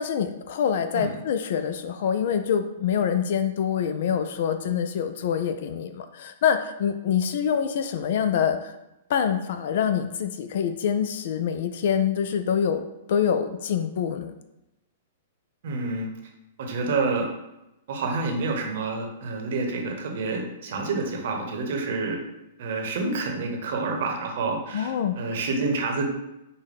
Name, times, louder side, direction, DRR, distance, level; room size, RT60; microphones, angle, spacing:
voice 1, 0.0-8.7 9.1-12.8 13.1-14.3 24.7-25.2, left 8 dB, 65° left, 8 dB, 0.3 m, -25 dB
voice 2, 15.6-16.1 16.6-17.2 17.9-22.2 22.6-26.1, right 3 dB, 65° right, 2 dB, 0.8 m, -28 dB
5.1 x 2.2 x 3.4 m, 0.92 s
hypercardioid pair, 125°, 0 cm